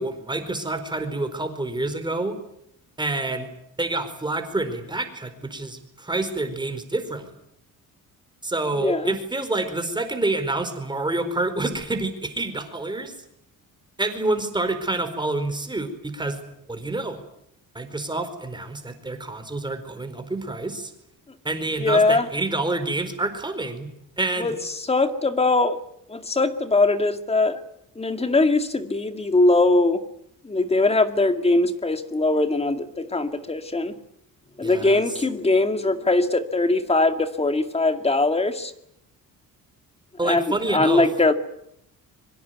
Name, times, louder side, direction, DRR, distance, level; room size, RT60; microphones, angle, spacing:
voice 1, 0.0-2.4 3.0-3.5 3.8-7.3 8.4-13.1 14.0-17.2 17.7-20.9 21.4-23.9 24.2-24.5 34.6-35.0 40.2-41.1, right 2 dB, 15° right, 4.7 m, -28 dB
voice 2, 8.8-9.1 21.8-22.3 24.4-25.8 26.1-27.6 28.0-30.1 30.4-34.0 34.6-38.7 40.2-41.3, left 2 dB, 15° left, 2.2 m, -21 dB
25.0 x 24.0 x 9.5 m
cardioid pair, 130°, 35 cm